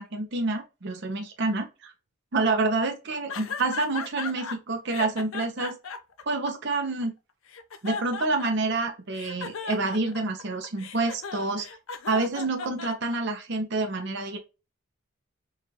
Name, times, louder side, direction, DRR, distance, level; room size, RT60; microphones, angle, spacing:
voice 1, 0.0-1.9 2.3-5.8 6.3-7.1 7.8-11.7 12.1-14.4, right 3 dB, 55° right, 0.7 m, -28 dB
sound 1, 3.3-4.6 4.9-7.0 7.5-8.8 9.1-13.4, left 5 dB, 70° left, 0.5 m, -36 dB
4.7 x 2.4 x 2.8 m
head